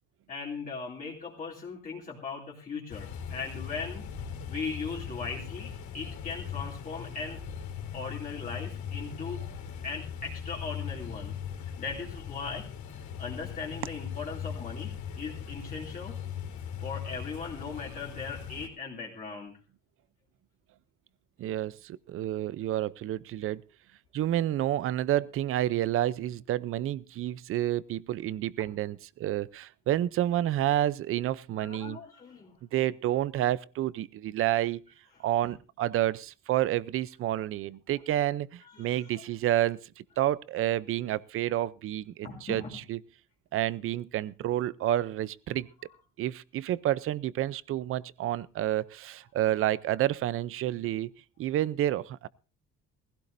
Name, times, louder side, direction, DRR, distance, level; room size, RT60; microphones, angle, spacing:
voice 1, 0.3-4.1 4.5-7.4 7.9-9.4 9.8-12.7 12.9-16.2 16.8-19.5 28.6-28.7 31.6-32.6 35.4-35.5 38.7-39.2 42.2-42.8, left 4 dB, 30° left, 2.8 m, -39 dB
sound 1, 2.9-18.7, left 8 dB, 70° left, 3.8 m, -39 dB
voice 2, 21.4-23.6 24.1-32.0 32.7-34.8 35.2-43.0 43.5-45.7 46.2-51.1 51.4-52.3, right 13 dB, 45° right, 0.6 m, -29 dB
19.5 x 16.0 x 2.6 m
cardioid pair, 180°, 29 cm